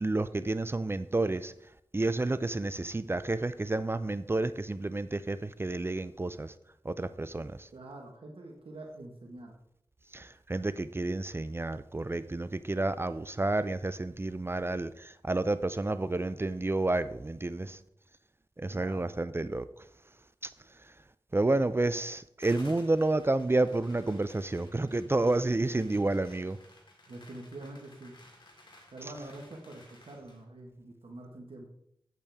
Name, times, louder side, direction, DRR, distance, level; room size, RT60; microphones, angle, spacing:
voice 1, 0.0-1.5 1.9-6.5 6.8-7.7 10.1-17.8 18.6-19.7 21.3-26.6, right 2 dB, 25° right, 14 dB, 0.4 m, -30 dB
voice 2, 7.7-9.5 18.7-19.1 27.1-28.1 28.9-31.7, right 2 dB, 80° right, 1 dB, 1.4 m, -46 dB
sound 1, 22.4-30.4, left 1 dB, 55° left, 2.5 m, -56 dB
8.5 x 8.4 x 3.5 m, 0.72 s
wide cardioid pair, 65°, 9 cm